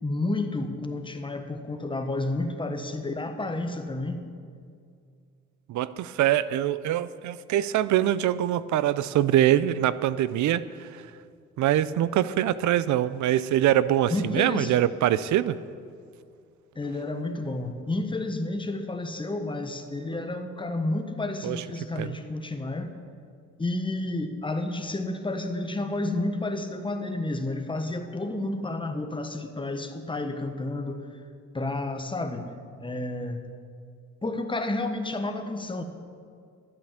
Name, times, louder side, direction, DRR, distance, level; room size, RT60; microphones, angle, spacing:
voice 1, 0.0-4.2 14.1-14.7 16.7-22.9 23.6-31.0 31.5-32.5 32.8-33.4 34.2-35.8, left 2 dB, 15° left, 6 dB, 1.2 m, -30 dB
voice 2, 5.7-11.0 11.6-15.6 21.4-21.6 22.0-22.2, right 12 dB, 70° right, 17 dB, 0.6 m, -24 dB
12.5 x 8.6 x 7.4 m, 2.3 s
cardioid pair, 90°, 30 cm